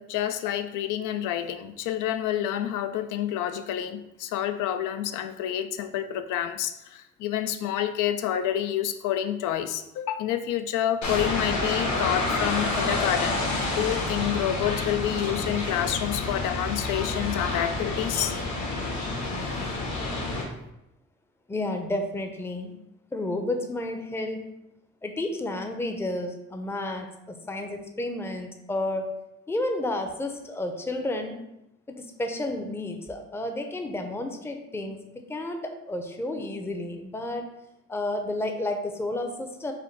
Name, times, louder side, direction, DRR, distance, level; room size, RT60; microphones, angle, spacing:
voice 1, 0.0-13.4 13.8-18.4, left 11 dB, 85° left, 10 dB, 0.5 m, -28 dB
sound 1, 11.0-20.4, left 2 dB, 70° left, 1.4 m, -29 dB
voice 2, 21.5-22.7 23.1-24.5 25.0-29.2 29.5-31.4 31.9-37.4 37.9-39.7, left 1 dB, 10° left, 5 dB, 0.5 m, -31 dB
4.9 x 2.2 x 4.5 m, 0.88 s
cardioid pair, 90°, 30 cm